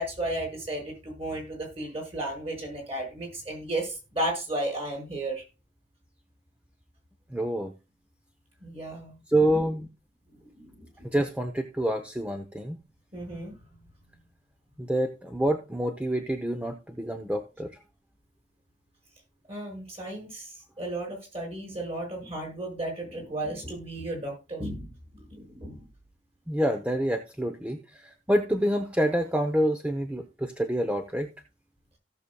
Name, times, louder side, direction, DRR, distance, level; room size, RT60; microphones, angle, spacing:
voice 1, 0.0-5.4 8.6-9.6 10.5-10.9 13.1-13.6 19.5-25.9, right 1 dB, 35° right, 3 dB, 5.4 m, -34 dB
voice 2, 7.3-7.7 9.3-9.9 11.0-12.8 14.8-17.7 26.5-31.3, right 1 dB, 10° right, 6 dB, 0.8 m, -27 dB
17.0 x 6.8 x 2.3 m, 0.28 s
head